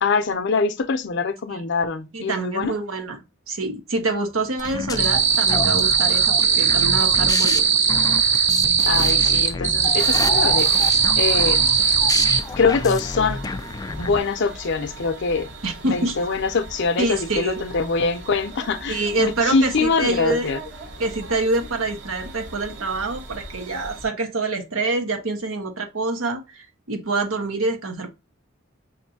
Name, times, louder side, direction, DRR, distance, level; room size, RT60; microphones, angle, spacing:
voice 1, 0.0-2.7 8.8-11.7 12.6-13.4 14.0-15.5 15.8-20.6, left 4 dB, 60° left, 0.6 m, -23 dB
voice 2, 2.1-3.2 3.5-7.6 15.6-16.1 17.0-17.6 18.9-20.5 21.0-28.1, right 2 dB, 85° right, 1.2 m, -26 dB
sound 1, 4.6-14.2, left 3 dB, 20° left, 0.3 m, -30 dB
sound 2, 5.0-12.4, right 6 dB, 35° right, 0.7 m, -19 dB
sound 3, 9.8-24.1, right 2 dB, 60° right, 1.2 m, -40 dB
6.2 x 2.7 x 2.7 m
head